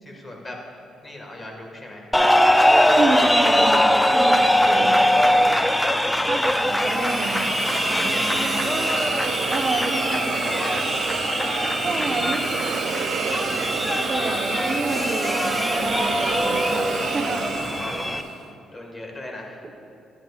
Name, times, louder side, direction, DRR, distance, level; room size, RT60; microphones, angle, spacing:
voice 1, 0.0-0.6 1.0-2.1 4.8-5.1 5.9-6.3 8.1-8.7 9.8-10.9 11.8-12.2 17.2-18.2 18.7-19.6, left 1 dB, 25° left, 0 dB, 1.8 m, -39 dB
sound 1, 2.1-18.2, left 1 dB, 10° left, 0.4 m, -21 dB
voice 2, 2.9-5.0 6.2-7.5 7.7-8.5 9.5-10.5 11.8-12.5 14.0-16.8 17.1-17.6, right 3 dB, 40° right, 3 dB, 1.0 m, -29 dB
Hiss, 6.3-18.4, right 7 dB, 80° right, 0.5 m, -29 dB
13.5 x 10.5 x 2.5 m, 2.7 s
cardioid pair, 90°, 0 cm